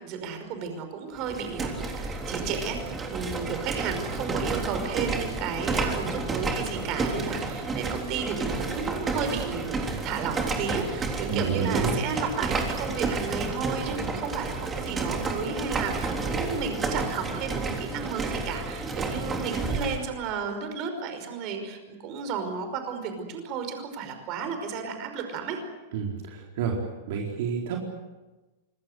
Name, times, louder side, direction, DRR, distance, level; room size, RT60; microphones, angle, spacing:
voice 1, 0.0-25.6, right 6 dB, 40° right, 6 dB, 5.4 m, -33 dB
sound 1, 1.2-20.0, right 3 dB, 15° right, 3.6 m, -31 dB
voice 2, 11.3-12.0 25.9-26.8 27.1-27.8, right 6 dB, 60° right, 0 dB, 4.3 m, -29 dB
26.0 x 21.0 x 8.1 m, 1.1 s
supercardioid pair, 145°, 0 cm